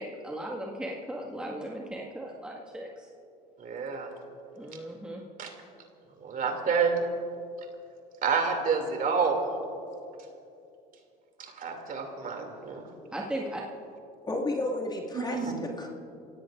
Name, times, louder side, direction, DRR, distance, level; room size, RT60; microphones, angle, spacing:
voice 1, 0.0-3.1 4.5-5.2 13.1-13.6, right 1 dB, 5° right, -3 dB, 1.9 m, -37 dB
voice 2, 3.6-4.1 5.4-5.5 6.2-7.0 8.2-9.6 11.4-12.9 15.1-15.5, right 5 dB, 45° right, 3 dB, 2.8 m, -28 dB
voice 3, 14.2-15.9, left 2 dB, 20° left, -1 dB, 2.3 m, -32 dB
29.0 x 17.0 x 2.6 m, 2.7 s
hypercardioid pair, 75°, 19 cm